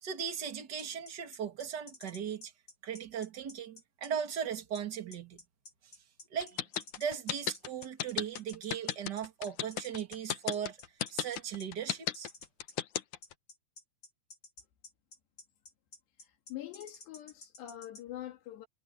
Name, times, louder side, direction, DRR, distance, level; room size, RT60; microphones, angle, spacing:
voice 1, 0.0-2.5 2.8-5.4 6.3-6.6 7.0-10.8 11.1-12.3, right 8 dB, 35° right, 1.9 m, -38 dB
sound 1, 0.8-18.0, left 3 dB, 25° left, 7.8 m, -52 dB
sound 2, 6.4-13.3, left 11 dB, 65° left, 2.1 m, -34 dB
voice 2, 16.5-18.7, left 13 dB, 90° left, 4.3 m, -44 dB
omnidirectional pair, 4.7 m